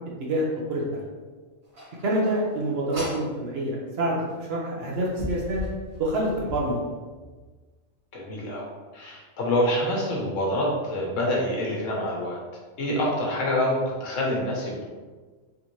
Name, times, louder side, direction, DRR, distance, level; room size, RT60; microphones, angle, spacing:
voice 1, 0.2-1.1 2.0-5.6 6.0-6.7 12.9-13.0, right 1 dB, 60° right, -3 dB, 0.9 m, -27 dB
sound 1, 1.7-3.3 4.3-4.4 4.9-6.6, left 1 dB, 45° right, 1.2 m, -36 dB
voice 2, 8.1-12.4 12.8-14.8, left 1 dB, 75° left, -3 dB, 1.2 m, -26 dB
3.5 x 2.6 x 3.0 m, 1.4 s
omnidirectional pair, 1.3 m